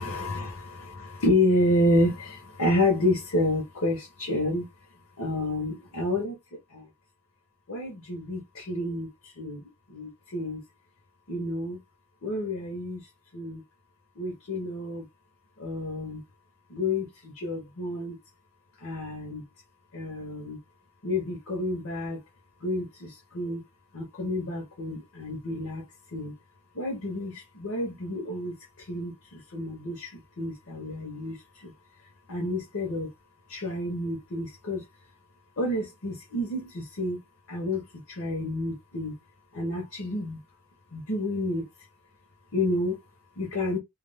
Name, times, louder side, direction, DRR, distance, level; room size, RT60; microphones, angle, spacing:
voice 1, 0.0-4.7 5.2-6.4 6.7-6.9 7.7-9.6 9.9-10.6 11.3-11.8 12.2-13.0 13.3-13.6 14.2-15.0 15.6-16.2 16.7-18.2 18.8-19.4 19.9-20.6 21.0-22.2 22.6-23.6 23.9-25.8 26.1-26.3 26.7-31.7 32.3-33.1 33.5-34.8 35.6-37.2 37.5-39.1 39.5-40.4 40.9-41.7 42.5-43.0 43.4-43.8, left 1 dB, 70° left, 0.9 m, -29 dB
2.4 x 2.3 x 3.3 m
head